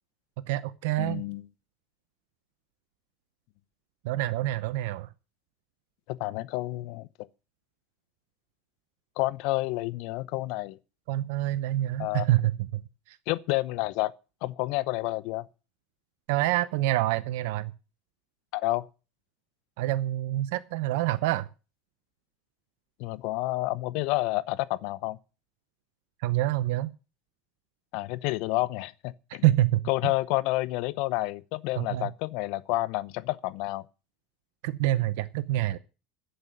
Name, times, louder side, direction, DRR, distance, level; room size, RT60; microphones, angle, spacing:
voice 1, 0.5-1.2 4.0-5.1 11.1-13.2 16.3-17.7 19.8-21.5 26.2-26.9 29.4-29.8 31.8-32.1 34.6-35.8, right 15 dB, 70° right, 0.7 m, -27 dB
voice 2, 1.0-1.5 6.1-7.1 9.2-10.8 12.0-12.3 13.3-14.1 14.4-15.5 18.5-18.9 23.0-25.2 27.9-29.4 29.9-33.8, left 19 dB, 65° left, 0.8 m, -29 dB
11.0 x 8.0 x 7.9 m
hypercardioid pair, 80°, 0 cm